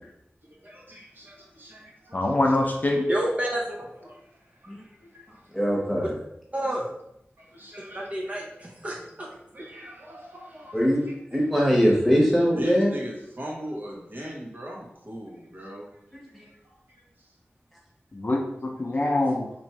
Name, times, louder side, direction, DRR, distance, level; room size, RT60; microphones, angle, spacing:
voice 1, 0.5-2.2 2.5-2.6 4.0-5.6 7.4-8.4 9.5-11.1 12.5-15.9 16.3-16.4 16.9-17.3, equal, 50° right, -2 dB, 1.0 m, -40 dB
voice 2, 2.1-3.1 18.1-19.5, left 2 dB, 40° left, 1 dB, 0.5 m, -24 dB
voice 3, 3.1-3.9 6.5-6.9 7.9-9.3 19.0-19.2, right 1 dB, 30° right, -3 dB, 0.7 m, -30 dB
voice 4, 5.5-6.1 10.7-11.0 11.3-12.9, equal, ahead, -4 dB, 1.2 m, -21 dB
3.0 x 2.6 x 4.4 m, 0.79 s
wide cardioid pair, 70°, 4 cm